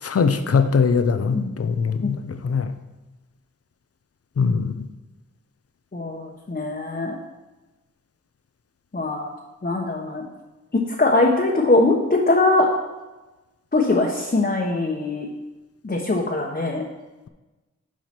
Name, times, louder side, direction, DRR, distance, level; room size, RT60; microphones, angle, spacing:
voice 1, 0.0-2.8 4.4-4.9, left 5 dB, 50° left, 9 dB, 0.7 m, -21 dB
voice 2, 5.9-7.1 8.9-9.3 9.6-10.2 10.7-12.7 13.7-15.3 15.8-16.8, left 2 dB, 35° left, -1 dB, 1.3 m, -21 dB
7.5 x 5.0 x 6.1 m, 1.1 s
cardioid pair, 50°, 30 cm